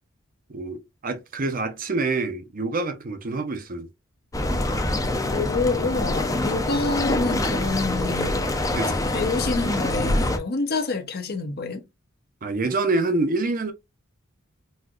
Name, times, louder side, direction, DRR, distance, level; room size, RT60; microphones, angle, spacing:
voice 1, 0.5-3.9 8.8-9.0 12.4-13.7, right 3 dB, 40° right, 0.7 m, -26 dB
sound 1, 4.3-10.4, left 1 dB, 15° left, 0.6 m, -25 dB
voice 2, 5.3-8.5 9.1-11.8, left 3 dB, 50° left, 0.8 m, -27 dB
4.2 x 2.6 x 2.4 m
head